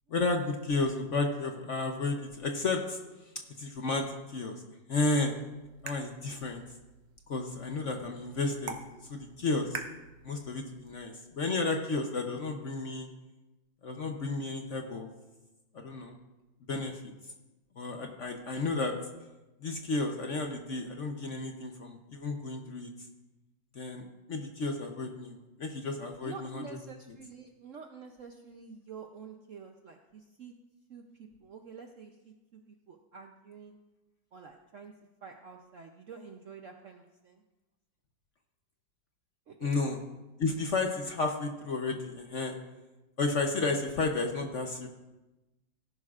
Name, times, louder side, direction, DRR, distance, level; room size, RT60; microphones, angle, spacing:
voice 1, 0.1-3.0 3.6-4.6 4.9-5.3 5.8-6.6 7.3-8.8 9.1-9.8 10.2-13.1 13.8-15.1 15.7-16.2 16.7-17.0 17.8-18.9 19.6-22.9 23.7-26.7 39.6-40.0 40.4-42.5 43.2-44.9, left 3 dB, 55° left, 3 dB, 0.9 m, -32 dB
sound 1, 5.0-11.0, right 6 dB, 85° right, 1.6 m, -47 dB
voice 2, 26.2-30.5 30.9-33.8 34.3-34.9 35.2-37.4 39.5-39.8, right 5 dB, 65° right, 4 dB, 0.8 m, -48 dB
17.5 x 11.0 x 2.4 m, 1.1 s
omnidirectional pair, 2.0 m